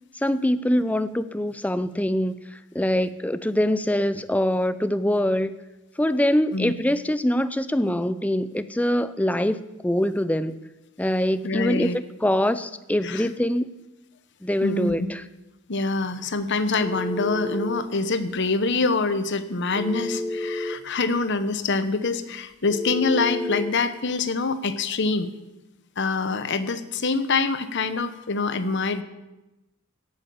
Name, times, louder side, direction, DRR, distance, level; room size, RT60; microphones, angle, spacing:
voice 1, 0.2-2.3 2.7-5.5 6.0-10.6 11.0-13.7 14.4-15.2, left 1 dB, 5° left, 13 dB, 0.5 m, -24 dB
voice 2, 11.4-12.0 13.0-13.3 14.6-14.9 15.7-25.3 26.0-29.0, left 3 dB, 55° left, 11 dB, 1.0 m, -25 dB
Telephone, 16.8-17.8 19.7-20.8 22.7-23.7, left 1 dB, 35° left, 1.5 m, -30 dB
17.0 x 8.6 x 7.0 m, 1.0 s
head